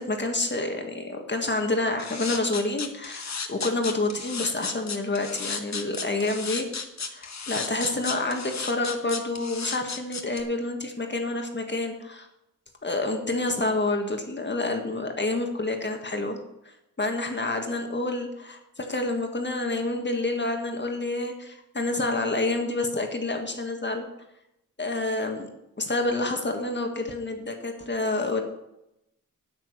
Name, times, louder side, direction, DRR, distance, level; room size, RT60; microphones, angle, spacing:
voice 1, 0.0-6.7 7.1-12.3 12.8-16.4 16.6-24.1 24.8-25.5 25.8-28.4, left 2 dB, 35° left, 4 dB, 1.7 m, -28 dB
sound 1, 2.0-10.4, left 5 dB, 55° left, 1.4 m, -33 dB
9.3 x 9.2 x 6.5 m, 0.86 s
wide cardioid pair, 100°, 33 cm